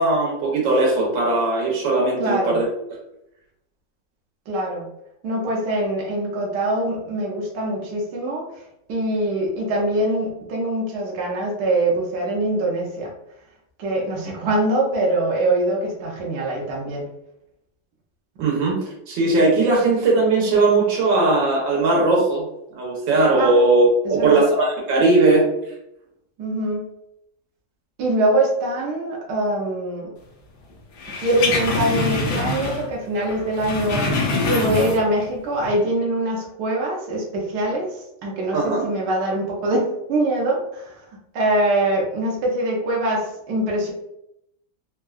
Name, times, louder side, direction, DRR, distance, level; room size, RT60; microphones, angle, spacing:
voice 1, 0.0-2.6 18.4-18.8 19.1-22.4 22.7-25.4 38.5-38.9, right 2 dB, 85° right, -2 dB, 1.6 m, -18 dB
voice 2, 2.2-2.6 4.5-4.9 5.2-8.5 8.9-13.1 13.8-17.1 23.4-23.6 24.0-24.5 26.4-26.9 28.0-30.1 31.2-34.1 34.4-40.9 41.3-43.9, right 1 dB, 70° right, -2 dB, 1.2 m, -23 dB
sound 1, 31.0-32.9 33.2-35.2 35.6-35.7, left 3 dB, 70° left, 1.2 m, -24 dB
3.5 x 2.2 x 2.3 m, 0.79 s
omnidirectional pair, 2.0 m